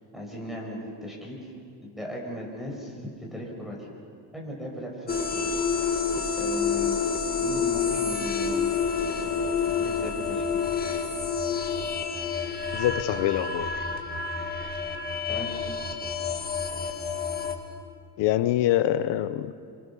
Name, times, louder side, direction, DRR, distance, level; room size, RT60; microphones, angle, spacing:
voice 1, 0.1-1.5 1.8-3.0 3.3-3.8 4.3-5.4 6.4-7.0 7.4-8.8 9.1-10.6 15.3-15.6, left 1 dB, ahead, -2 dB, 5.7 m, -37 dB
sound 1, 5.1-17.5, left 5 dB, 20° left, 2.0 m, -28 dB
voice 2, 12.7-13.7 18.2-19.5, left 13 dB, 80° left, 12 dB, 1.0 m, -25 dB
27.5 x 25.0 x 7.1 m, 2.4 s
cardioid pair, 160°, 42 cm